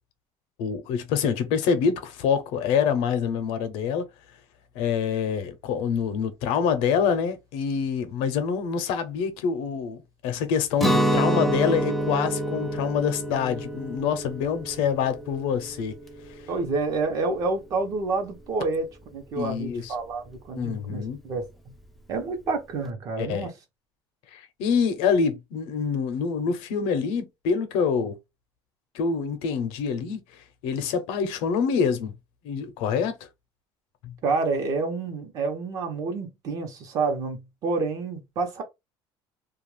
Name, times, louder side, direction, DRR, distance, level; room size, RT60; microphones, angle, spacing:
voice 1, 0.6-4.1 4.7-15.9 16.3-16.5 19.4-19.9 20.6-21.2 23.2-23.5 24.3-28.2 28.9-32.1 32.4-33.1 34.0-34.1, left 6 dB, 90° left, 0.7 m, -26 dB
Guitar, 10.8-16.6, right 1 dB, ahead, 0.3 m, -27 dB
voice 2, 16.5-21.5 22.1-23.5 34.2-38.6, right 3 dB, 40° right, 0.8 m, -28 dB
2.4 x 2.3 x 3.2 m
cardioid pair, 180°, 9 cm